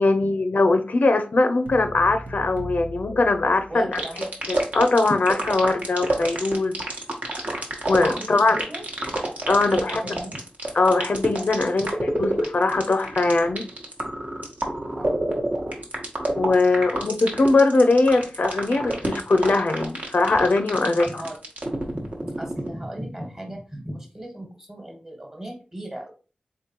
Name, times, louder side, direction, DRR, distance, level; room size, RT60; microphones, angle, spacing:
voice 1, 0.0-3.9 4.5-6.7 7.9-8.6 9.5-10.1 10.7-13.7 16.4-21.1, left 3 dB, 60° left, 0.4 m, -21 dB
sound 1, 1.7-4.2, equal, 80° right, 0.8 m, -38 dB
voice 2, 3.7-4.2 8.1-8.8 9.6-10.4 14.9-15.3 20.8-21.3 21.9-26.1, right 1 dB, 20° right, 1.3 m, -37 dB
sound 2, 3.9-22.7, right 1 dB, 55° right, 1.0 m, -28 dB
3.6 x 3.5 x 2.8 m
cardioid pair, 50°, 3 cm